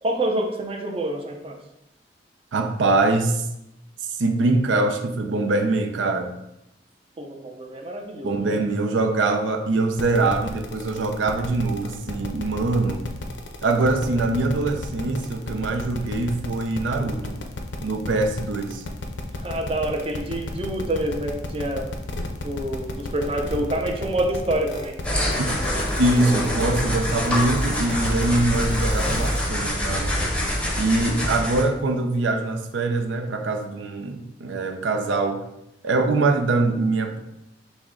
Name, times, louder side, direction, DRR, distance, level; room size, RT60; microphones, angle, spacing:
voice 1, 0.0-1.6 7.2-8.7 19.3-21.9 22.4-25.0, right 1 dB, 30° right, 3 dB, 0.5 m, -27 dB
voice 2, 2.5-3.4 4.2-6.3 8.2-13.0 13.6-17.4 17.8-18.8 25.4-25.5 26.0-30.2 30.8-35.4 35.8-37.2, right 2 dB, 90° right, 5 dB, 0.5 m, -23 dB
sound 1, 10.0-29.5, left 2 dB, 80° left, 0.6 m, -33 dB
sound 2, 25.0-31.6, equal, 5° left, 0.7 m, -25 dB
6.0 x 2.1 x 3.7 m, 0.86 s
head